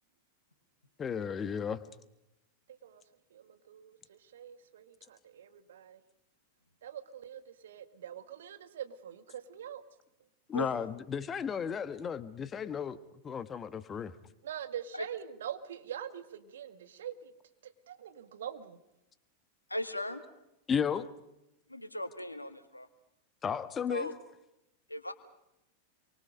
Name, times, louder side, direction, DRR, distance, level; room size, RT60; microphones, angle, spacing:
voice 1, 1.0-1.8 10.5-13.0 13.2-14.1 20.7-21.1 23.4-24.1, left 7 dB, 20° left, 13 dB, 1.3 m, -34 dB
voice 2, 3.3-6.0 6.8-9.8 14.4-17.3 17.6-18.8, right 9 dB, 60° right, 9 dB, 1.8 m, -44 dB
voice 3, 19.7-20.2 21.7-22.9 23.9-24.1 24.9-25.1, left 1 dB, 85° left, 8 dB, 2.0 m, -37 dB
27.5 x 24.0 x 5.2 m, 0.88 s
figure-of-eight pair, 90°, 0 cm